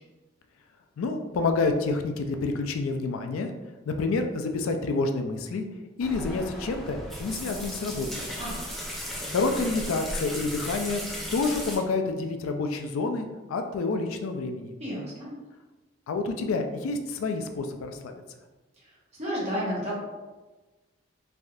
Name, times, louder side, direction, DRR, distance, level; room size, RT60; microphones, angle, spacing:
voice 1, 1.0-3.5 3.9-5.6 6.0-8.2 9.3-11.0 11.3-14.7 16.1-18.1, left 3 dB, 90° left, 6 dB, 0.3 m, -28 dB
sound 1, 6.0-11.8, equal, ahead, 0.4 m, -36 dB
voice 2, 14.8-15.3 18.8-19.9, equal, 30° right, -7 dB, 1.0 m, -32 dB
3.3 x 2.6 x 2.4 m, 1.2 s
head